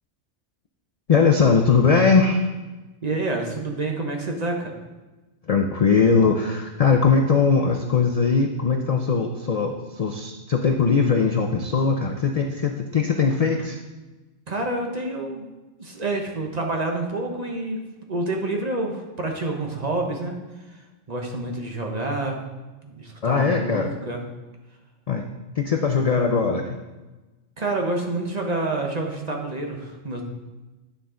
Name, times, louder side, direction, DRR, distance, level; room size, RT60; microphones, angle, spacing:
voice 1, 1.1-2.5 5.5-13.8 23.2-23.9 25.1-25.3 25.6-26.8, left 5 dB, 60° left, 4 dB, 0.4 m, -20 dB
voice 2, 3.0-4.7 14.5-15.4 15.8-17.8 18.1-20.4 21.1-22.4 22.8-24.2 27.6-30.2, right 2 dB, 35° right, 1 dB, 0.9 m, -28 dB
9.3 x 5.5 x 3.7 m, 1.1 s
omnidirectional pair, 1.3 m